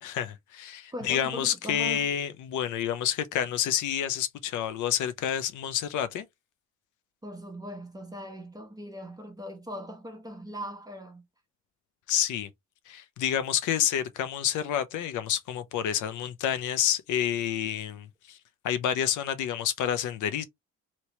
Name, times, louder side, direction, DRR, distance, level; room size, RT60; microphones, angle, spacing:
voice 1, 0.0-6.2 12.1-12.5 12.9-18.4 18.6-20.4, left 10 dB, 80° left, 0.6 m, -29 dB
voice 2, 0.9-2.1 7.2-11.2, equal, 10° right, 1.0 m, -40 dB
2.9 x 2.9 x 3.1 m
cardioid pair, 90°, 30 cm